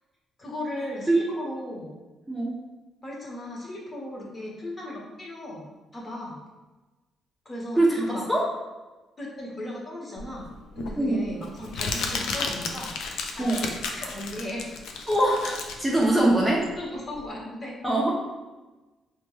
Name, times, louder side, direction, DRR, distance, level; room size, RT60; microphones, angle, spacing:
voice 1, 0.4-1.9 3.0-5.6 5.9-6.4 7.4-8.2 9.2-10.5 10.7-12.9 13.4-14.7 16.7-17.7, left 1 dB, 30° left, -3 dB, 1.1 m, -36 dB
voice 2, 2.3-2.6 7.8-8.5 10.9-11.3 13.4-13.6 15.1-16.7 17.8-18.2, right 1 dB, 5° right, -4 dB, 0.6 m, -23 dB
Crumpling crinkling, 10.2-17.2, left 4 dB, 85° left, 0.4 m, -33 dB
4.2 x 2.2 x 3.0 m, 1.2 s
cardioid pair, 90°, 0 cm